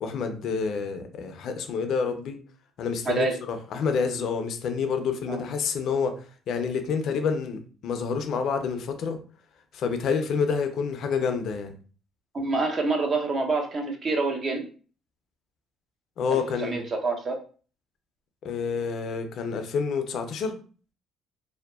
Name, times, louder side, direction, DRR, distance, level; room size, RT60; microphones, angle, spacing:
voice 1, 0.0-2.4 2.8-9.2 9.7-11.7 16.2-16.8 18.4-20.6, left 5 dB, 65° left, 0.4 m, -28 dB
voice 2, 3.1-3.4 5.3-5.4 12.3-14.7 16.3-17.4, right 3 dB, 45° right, 0.7 m, -27 dB
2.7 x 2.1 x 2.3 m
hypercardioid pair, 60°, 0 cm